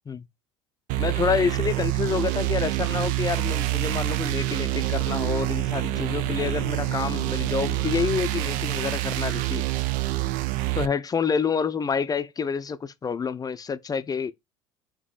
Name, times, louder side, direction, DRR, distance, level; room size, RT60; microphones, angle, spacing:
sound 1, 0.9-10.9, right 19 dB, 55° right, 0.4 m, -27 dB
voice 1, 1.0-9.6 10.7-14.3, left 6 dB, 25° left, 0.5 m, -28 dB
sound 2, 3.4-9.0, left 4 dB, 90° left, 0.7 m, -41 dB
3.9 x 2.8 x 3.8 m
hypercardioid pair, 70°, 16 cm